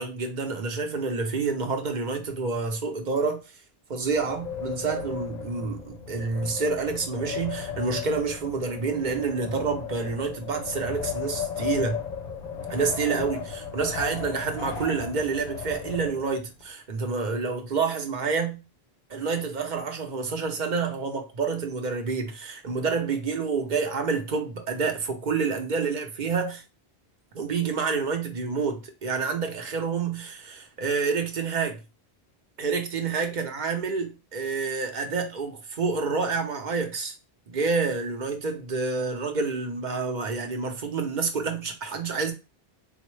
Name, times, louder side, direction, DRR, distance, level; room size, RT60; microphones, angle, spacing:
voice 1, 0.0-3.4 3.9-12.0 12.7-18.6 19.1-26.6 27.3-31.8 32.6-37.2 37.5-42.3, right 4 dB, 50° right, 0.8 m, -28 dB
Wind, 4.0-16.6, left 7 dB, 55° left, 0.6 m, -35 dB
4.1 x 2.1 x 3.1 m
omnidirectional pair, 1.0 m